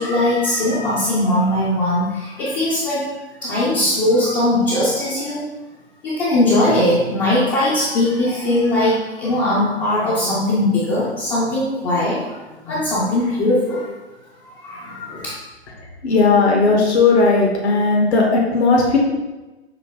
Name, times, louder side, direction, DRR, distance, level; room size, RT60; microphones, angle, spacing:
voice 1, 0.0-3.0 3.4-5.5 6.0-12.2 12.6-13.9 14.6-15.3, left 1 dB, 15° left, -9 dB, 0.5 m, -19 dB
voice 2, 16.0-19.0, left 3 dB, 70° left, -2 dB, 1.1 m, -16 dB
6.8 x 2.6 x 2.3 m, 1.1 s
figure-of-eight pair, 125°, 34 cm